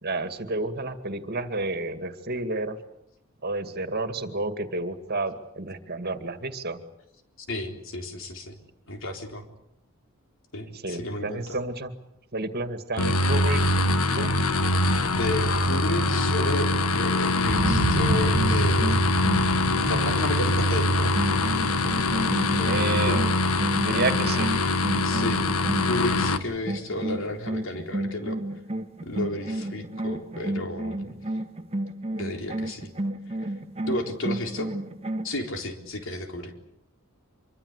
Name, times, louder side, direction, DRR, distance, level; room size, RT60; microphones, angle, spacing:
voice 1, 0.0-2.8 3.4-6.8 10.7-11.9 12.3-13.6 14.1-14.3 22.6-23.4 23.8-24.5, right 2 dB, 45° right, 9 dB, 2.2 m, -30 dB
voice 2, 7.5-8.6 8.9-9.4 10.5-11.6 15.1-19.3 19.8-21.1 22.9-23.3 25.0-25.5 25.8-28.4 29.0-31.2 32.2-32.9 33.9-34.7 35.2-36.5, left 2 dB, 60° left, 4 dB, 4.0 m, -32 dB
sound 1, 13.0-26.4, left 2 dB, 80° left, 1.6 m, -23 dB
sound 2, 17.4-25.3 25.7-25.8, right 2 dB, 85° right, 1.2 m, -32 dB
sound 3, 17.5-26.3 26.7-35.3, right 1 dB, 30° right, 1.6 m, -32 dB
26.0 x 24.0 x 8.2 m, 0.79 s
head